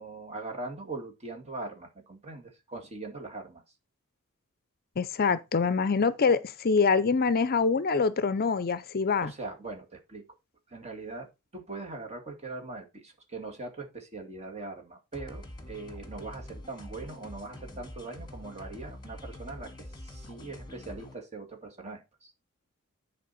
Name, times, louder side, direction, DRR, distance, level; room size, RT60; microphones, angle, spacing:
voice 1, 0.0-3.6 9.2-10.2 10.7-22.3, right 3 dB, 30° right, 2.1 m, -41 dB
voice 2, 5.0-9.3, left 5 dB, 45° left, 0.5 m, -25 dB
sound 1, 15.1-21.1, left 1 dB, 20° left, 1.8 m, -45 dB
10.0 x 4.5 x 4.2 m
head